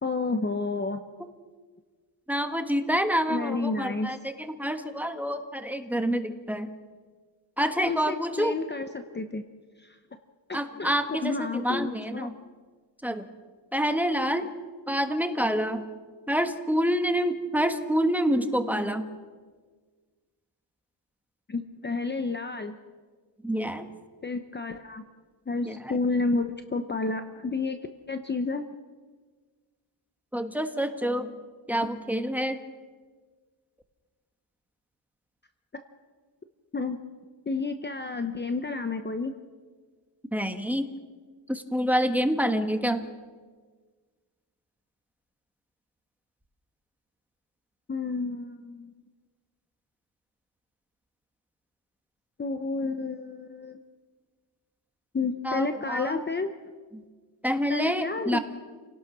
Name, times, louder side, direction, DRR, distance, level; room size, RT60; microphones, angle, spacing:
voice 1, 0.0-1.0 3.3-4.1 7.9-9.4 9.8-10.0 10.5-12.3 21.5-22.8 24.2-25.0 25.5-27.8 28.1-28.6 35.7-35.8 36.7-37.0 37.5-39.3 47.9-48.9 52.4-53.8 55.1-56.5 57.7-58.4, left 3 dB, 20° left, 7 dB, 0.9 m, -30 dB
voice 2, 2.3-6.7 7.6-8.6 10.5-12.3 13.0-13.3 13.7-14.5 14.9-15.9 16.3-19.1 23.4-23.9 25.7-25.8 30.3-31.3 31.7-32.6 40.3-40.9 41.5-43.1 55.4-56.3 56.9-57.0 57.4-58.4, equal, 5° right, 7 dB, 1.3 m, -27 dB
29.5 x 18.0 x 6.1 m, 1.5 s
wide cardioid pair, 155°, 48 cm